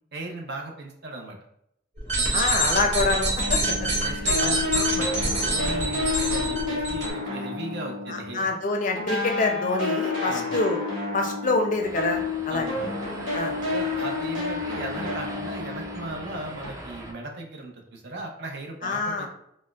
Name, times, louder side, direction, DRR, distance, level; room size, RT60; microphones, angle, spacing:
voice 1, 0.1-1.4 3.5-3.6 4.0-8.5 10.2-10.6 12.5-12.9 13.7-19.3, right 2 dB, 65° right, 2 dB, 0.7 m, -37 dB
sound 1, 2.0-7.1, right 1 dB, 40° right, 1.3 m, -26 dB
voice 2, 2.3-3.9 4.2-4.6 8.1-10.8 11.1-12.7 13.3-13.5 18.8-19.3, left 3 dB, 45° left, 3 dB, 0.5 m, -26 dB
sound 2, 3.4-8.6 8.9-16.7, left 3 dB, 80° right, 1.4 m, -30 dB
sound 3, 11.8-17.1, right 1 dB, 15° right, 0.3 m, -41 dB
4.2 x 2.1 x 2.3 m, 0.75 s
head